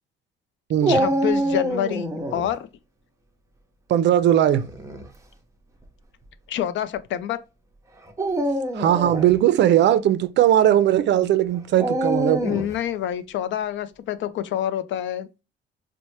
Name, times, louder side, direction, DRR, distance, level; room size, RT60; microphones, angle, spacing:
Dog, 0.8-2.5 4.6-5.0 5.8-5.9 8.1-9.3 11.8-12.8, right 1 dB, 15° right, 0.6 m, -25 dB
voice 1, 0.9-2.7 6.5-7.4 12.4-15.3, left 11 dB, 70° left, 0.4 m, -27 dB
voice 2, 3.9-4.7 8.8-12.4, right 11 dB, 65° right, 0.4 m, -18 dB
4.1 x 2.1 x 3.0 m
cardioid pair, 90°, 20 cm